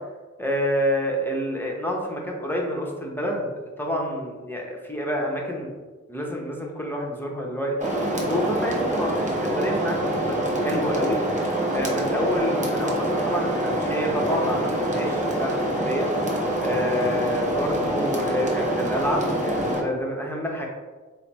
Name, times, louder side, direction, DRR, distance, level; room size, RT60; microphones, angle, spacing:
voice 1, 0.4-3.5 3.8-5.8 6.1-7.9 8.2-11.2 11.7-16.1 16.6-20.7, equal, 5° left, -1 dB, 0.7 m, -28 dB
sound 1, 7.8-19.8, right 1 dB, 25° right, 0.7 m, -25 dB
3.2 x 2.0 x 4.0 m, 1.3 s
cardioid pair, 55°, 29 cm